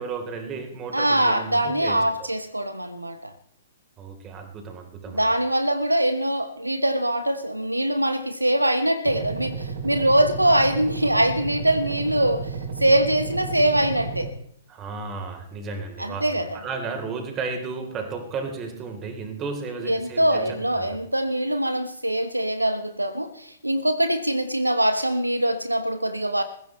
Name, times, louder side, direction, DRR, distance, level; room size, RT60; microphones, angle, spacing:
voice 1, 0.0-2.0 4.0-5.2 14.7-20.9, right 4 dB, 20° right, 3.5 m, -33 dB
voice 2, 0.9-3.3 5.1-12.5 12.8-14.3 16.0-16.6 19.8-26.4, right 1 dB, 90° right, 1.1 m, -23 dB
sound 1, 9.0-14.3, right 5 dB, 55° right, 3.6 m, -32 dB
21.0 x 15.5 x 3.2 m
figure-of-eight pair, 115°, 0 cm